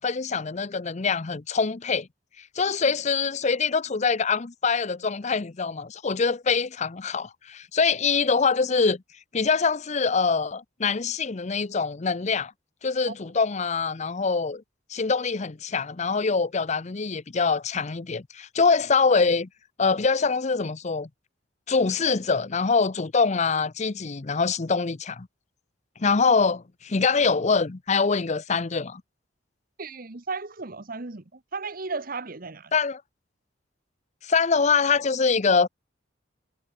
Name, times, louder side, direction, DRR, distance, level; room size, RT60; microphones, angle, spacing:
voice 1, 0.0-2.1 2.6-9.0 9.3-12.5 12.8-14.6 14.9-19.5 19.8-21.1 21.7-25.3 26.0-29.0 32.7-33.0 34.2-35.7, left 5 dB, 35° left, 0.6 m, -24 dB
voice 2, 29.8-32.7, right 4 dB, 45° right, 1.2 m, -35 dB
head